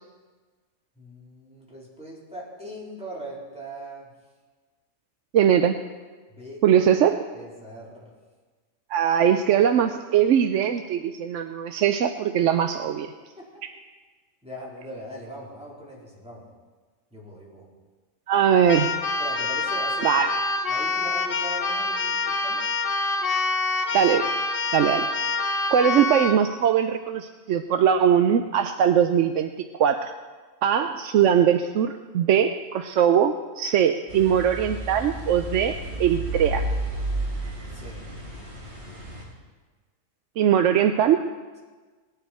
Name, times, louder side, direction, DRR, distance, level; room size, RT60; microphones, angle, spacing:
voice 1, 1.0-4.1 6.3-6.6 7.3-8.1 13.4-13.5 14.4-16.5 17.1-17.7 19.2-20.1 20.7-22.7 37.7-38.0, right 1 dB, 5° right, -6 dB, 3.9 m, -40 dB
voice 2, 5.3-5.8 6.6-7.2 8.9-13.1 18.3-19.0 20.0-20.3 23.9-24.3 24.7-25.1 25.7-30.1 30.6-36.7 40.4-41.2, right 9 dB, 70° right, 7 dB, 0.9 m, -21 dB
Keyboard (musical), 18.7-26.4, left 3 dB, 50° left, 1.0 m, -26 dB
sound 1, 34.1-39.2, right 1 dB, 50° right, 4.1 m, -32 dB
19.5 x 10.0 x 4.4 m, 1.4 s
omnidirectional pair, 1.4 m